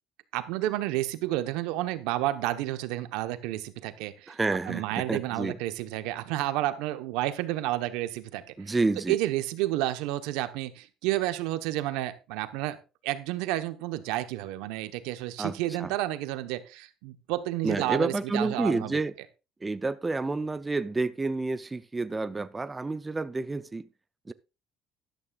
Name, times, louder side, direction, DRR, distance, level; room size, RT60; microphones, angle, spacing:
voice 1, 0.3-4.4 4.7-8.8 9.1-12.8 13.0-19.0, right 15 dB, 90° right, 1.0 m, -31 dB
voice 2, 4.3-5.6 8.6-9.2 15.4-15.9 17.6-19.1 19.6-23.9 24.3-24.4, right 3 dB, 15° right, 0.5 m, -29 dB
13.0 x 11.5 x 2.4 m
cardioid pair, 125°, 0 cm